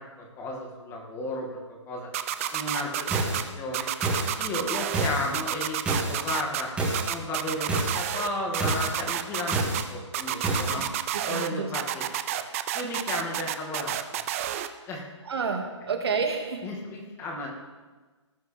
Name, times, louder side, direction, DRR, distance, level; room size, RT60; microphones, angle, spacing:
voice 1, 0.2-2.1 2.5-3.9 4.4-6.7 7.1-10.9 11.2-12.0 12.7-14.2 14.9-15.0 16.6-17.5, left 2 dB, 15° left, -1 dB, 2.3 m, -34 dB
sound 1, 2.1-3.4 3.7-5.1 5.3-6.6 6.9-8.3 8.5-9.8 10.1-11.5 11.7-14.7, right 12 dB, 25° right, 0.6 m, -29 dB
sound 2, 2.4-2.5 3.1-3.4 4.0-4.4 4.9-5.3 5.9-6.2 6.8-7.1 7.7-8.0 8.6-8.9 9.5-9.8 10.4-10.8, right 2 dB, 5° right, 2.2 m, -28 dB
voice 2, 10.4-10.8 11.1-11.7 15.3-16.7, right 5 dB, 55° right, 4 dB, 2.1 m, -30 dB
19.0 x 9.2 x 3.5 m, 1.3 s
figure-of-eight pair, 140°, 16 cm